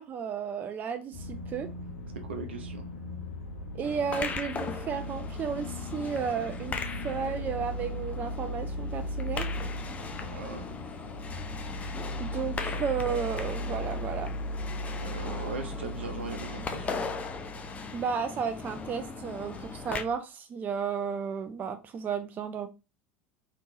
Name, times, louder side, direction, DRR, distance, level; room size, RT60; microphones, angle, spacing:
voice 1, 0.0-1.7 3.8-6.8 7.0-9.5 12.2-14.3 17.9-22.7, right 6 dB, 30° right, 0.4 m, -33 dB
sound 1, 1.1-20.2, left 1 dB, 65° left, 0.8 m, -38 dB
voice 2, 2.2-2.9 10.3-10.7 15.0-17.0, right 4 dB, 70° right, 0.7 m, -39 dB
sound 2, 3.8-20.0, left 5 dB, 20° left, 0.5 m, -39 dB
3.5 x 3.0 x 2.6 m
figure-of-eight pair, 70°, 6 cm